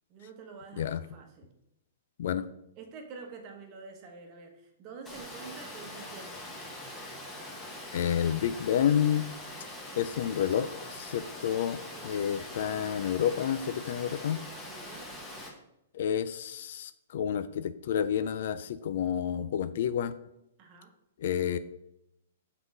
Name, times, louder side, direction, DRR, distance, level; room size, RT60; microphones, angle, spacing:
voice 1, 0.1-1.5 2.8-6.4 12.0-12.3 14.7-15.1 20.6-20.9, right 4 dB, 30° right, 4 dB, 1.0 m, -47 dB
Water, 5.0-15.5, left 1 dB, 10° left, 1.1 m, -43 dB
voice 2, 7.9-9.3 10.0-11.8 12.0-14.4 15.9-20.1 21.2-21.6, left 9 dB, 55° left, 13 dB, 0.3 m, -29 dB
5.9 x 3.9 x 5.3 m, 0.83 s
hypercardioid pair, 160°, 0 cm